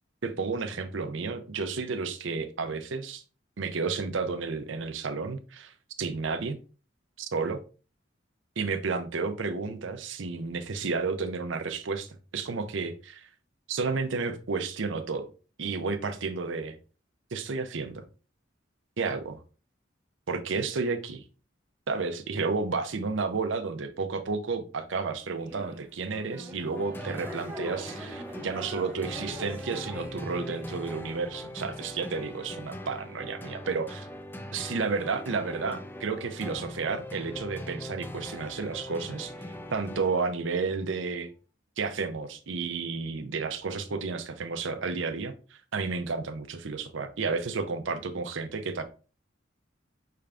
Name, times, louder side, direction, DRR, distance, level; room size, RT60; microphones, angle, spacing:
voice 1, 0.2-3.2 3.6-6.6 7.2-7.6 8.6-12.1 12.3-13.3 13.7-15.3 15.6-16.8 17.3-18.0 19.0-19.4 20.3-21.2 21.9-34.1 34.5-39.3 39.7-41.3 41.8-48.8, right 4 dB, 80° right, 9 dB, 0.6 m, -31 dB
sound 1, 25.4-30.7, equal, 10° right, 0.7 m, -43 dB
sound 2, 26.8-40.5, left 1 dB, 10° left, 0.3 m, -41 dB
5.7 x 3.4 x 2.5 m, 0.36 s
head